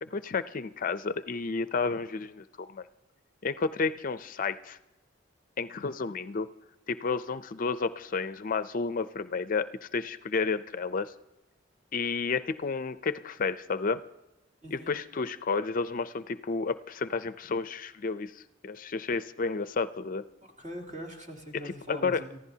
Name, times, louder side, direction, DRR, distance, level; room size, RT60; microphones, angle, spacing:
voice 1, 0.0-2.8 3.4-4.8 5.6-6.5 6.9-11.1 11.9-14.0 14.7-20.2 21.6-22.2, left 4 dB, 45° left, 13 dB, 0.5 m, -31 dB
voice 2, 14.6-14.9 20.4-22.4, equal, 40° right, -1 dB, 3.0 m, -42 dB
29.5 x 15.0 x 2.8 m, 1.0 s
head